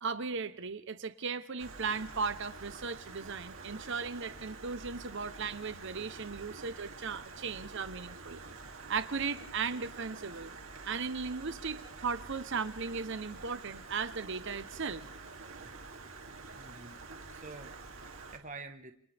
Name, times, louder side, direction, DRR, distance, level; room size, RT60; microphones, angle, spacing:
voice 1, 0.0-8.4 8.9-10.5 10.8-15.0, right 5 dB, 60° right, 12 dB, 1.0 m, -37 dB
Stream, 1.6-18.4, right 3 dB, 80° right, 3.0 m, -48 dB
voice 2, 15.5-15.8 16.5-17.0 17.3-18.9, right 3 dB, 40° right, 6 dB, 1.3 m, -49 dB
29.5 x 25.5 x 3.5 m, 0.65 s
head